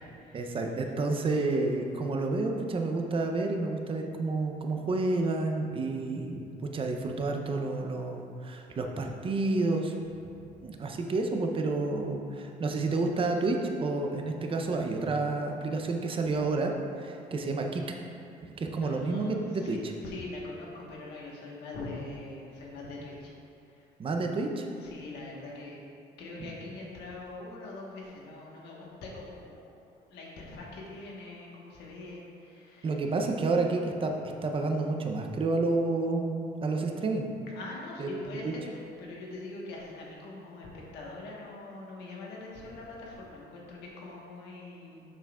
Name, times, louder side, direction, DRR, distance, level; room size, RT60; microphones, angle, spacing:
voice 1, 0.3-10.0 10.6-17.8 18.4-19.9 24.0-24.7 26.4-26.5 32.8-34.1 34.4-37.3 38.0-38.1 38.4-38.5, right 3 dB, 30° right, 3 dB, 0.6 m, -30 dB
voice 2, 18.8-23.3 23.7-23.9 24.8-25.8 26.2-32.9 37.5-40.7 40.9-45.0, left 2 dB, 80° left, -3 dB, 1.3 m, -43 dB
7.0 x 5.7 x 2.4 m, 2.5 s
cardioid pair, 110°, 17 cm